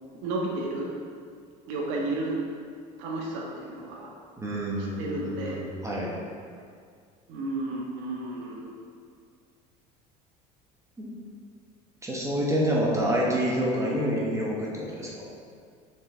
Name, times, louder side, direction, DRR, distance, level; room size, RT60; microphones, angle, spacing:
voice 1, 0.2-0.9 1.7-2.4 3.0-4.1 5.0-5.6 7.3-8.7, right 2 dB, 70° right, -2 dB, 1.3 m, -32 dB
voice 2, 4.4-6.1 11.0-11.2 12.0-15.3, equal, 15° right, -4 dB, 1.2 m, -28 dB
6.0 x 4.8 x 3.7 m, 2.1 s
supercardioid pair, 85°, 20 cm